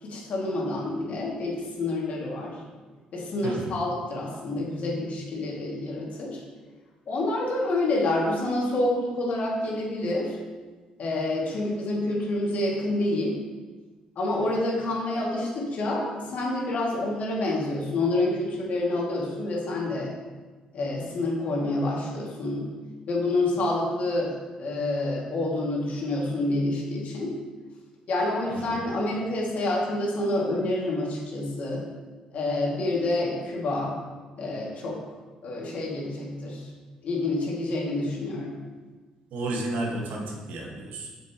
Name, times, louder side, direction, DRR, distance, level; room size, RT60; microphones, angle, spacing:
voice 1, 0.0-2.6 3.1-6.4 7.1-10.4 11.0-13.4 14.2-20.1 20.7-22.7 23.1-27.4 28.1-31.8 32.3-33.9 34.4-35.0 35.4-36.7 37.0-38.6, left 2 dB, 60° left, -3 dB, 2.3 m, -28 dB
voice 2, 3.4-3.8 28.5-28.9 39.3-41.1, right 2 dB, 70° right, 0 dB, 1.6 m, -32 dB
7.1 x 6.6 x 3.0 m, 1.3 s
hypercardioid pair, 50°, 3 cm